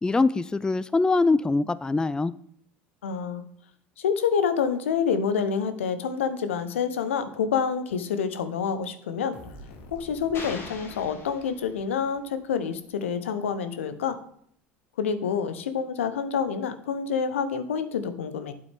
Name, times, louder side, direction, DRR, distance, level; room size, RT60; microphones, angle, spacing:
voice 1, 0.0-2.3, left 3 dB, 10° left, 17 dB, 0.4 m, -23 dB
voice 2, 3.0-3.4 4.0-9.4 9.9-14.2 15.0-18.5, left 6 dB, 80° left, 11 dB, 0.8 m, -27 dB
sound 1, 9.3-13.0, left 1 dB, 65° left, 2.0 m, -49 dB
sound 2, 10.3-12.1, left 3 dB, 40° left, 2.8 m, -42 dB
8.8 x 7.8 x 3.5 m, 0.67 s
hypercardioid pair, 75°, 7 cm